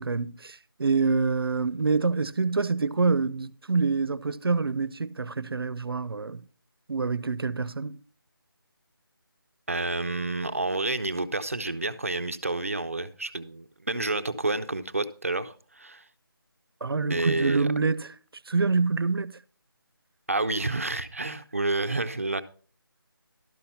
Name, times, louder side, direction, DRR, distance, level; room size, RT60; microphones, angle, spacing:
voice 1, 0.0-6.4 6.9-8.0 16.8-18.1 18.5-19.4, right 4 dB, 75° right, 0.6 m, -26 dB
voice 2, 9.7-16.0 17.1-17.7 20.3-22.4, right 2 dB, 35° right, 0.6 m, -29 dB
12.5 x 5.7 x 5.6 m
figure-of-eight pair, 180°, 12 cm